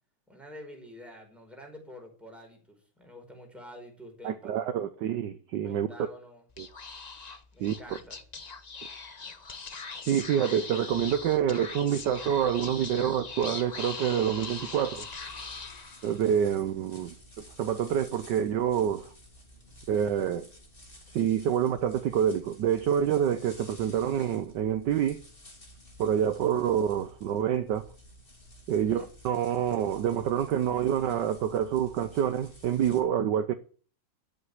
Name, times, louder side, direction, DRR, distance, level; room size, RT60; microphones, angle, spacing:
voice 1, 0.3-4.8 5.6-6.5 7.5-8.2 28.8-29.1, equal, ahead, 4.8 m, -48 dB
voice 2, 4.2-5.9 6.6-6.7 7.6-7.8 10.1-15.1 16.0-19.1 19.9-20.5 21.1-25.2 26.0-27.9 28.7-33.5, right 9 dB, 65° right, 1.3 m, -27 dB
Speech / Whispering, 6.5-16.3, left 4 dB, 45° left, 0.5 m, -41 dB
sound 1, 14.9-33.0, equal, 25° left, 3.5 m, -53 dB
12.0 x 7.9 x 8.0 m
omnidirectional pair, 2.3 m